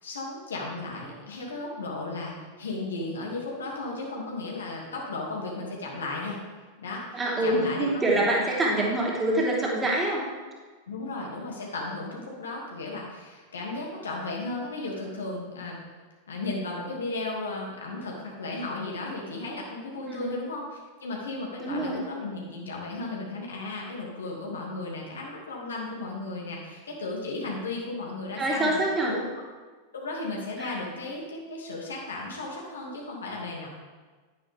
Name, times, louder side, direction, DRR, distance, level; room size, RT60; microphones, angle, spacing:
voice 1, 0.0-6.4 6.8-8.3 8.7-8.8 10.9-15.8 16.3-28.7 29.1-29.2 29.9-33.7, left 2 dB, 70° left, -2 dB, 2.5 m, -35 dB
voice 2, 7.1-10.2 20.1-20.4 21.6-22.0 28.4-29.1 30.6-30.8, right 1 dB, 15° right, -4 dB, 3.1 m, -26 dB
11.0 x 10.5 x 3.6 m, 1.4 s
figure-of-eight pair, 90°, 0 cm